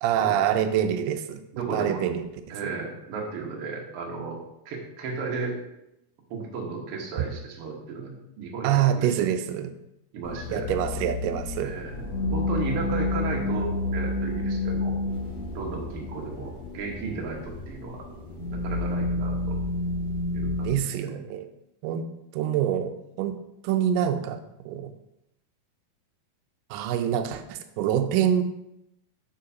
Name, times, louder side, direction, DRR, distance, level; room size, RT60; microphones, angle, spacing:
voice 1, 0.0-2.2 2.6-2.7 7.2-7.3 8.6-9.7 10.5-11.7 20.6-21.5 21.8-22.1 22.3-22.9 23.2-23.4 23.6-24.4 24.7-24.9 26.7-28.4, right 10 dB, 80° right, 7 dB, 2.1 m, -25 dB
voice 2, 1.5-2.0 2.5-4.4 4.6-5.6 6.3-9.1 10.1-10.7 11.6-14.9 15.5-18.0 18.5-19.6 20.3-21.2, right 4 dB, 60° right, -1 dB, 1.6 m, -34 dB
sound 1, 10.2-20.8, left 2 dB, 50° left, 1.2 m, -30 dB
7.3 x 6.3 x 2.8 m, 0.85 s
omnidirectional pair, 4.1 m